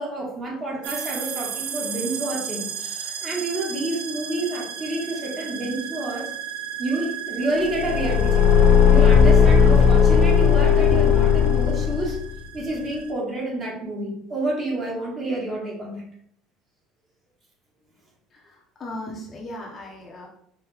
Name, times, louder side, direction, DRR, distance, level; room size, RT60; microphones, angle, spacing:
voice 1, 0.0-6.3 6.8-8.5 8.9-12.2 12.5-16.0, right 1 dB, 30° right, -2 dB, 1.4 m, -29 dB
sound 1, 0.8-13.1, right 8 dB, 75° right, 0.7 m, -35 dB
Car / Engine, 7.7-12.2, left 6 dB, 50° left, 0.4 m, -16 dB
voice 2, 18.3-20.3, left 1 dB, 25° left, -2 dB, 0.9 m, -37 dB
4.8 x 3.0 x 3.4 m, 0.69 s
cardioid pair, 145°, 0 cm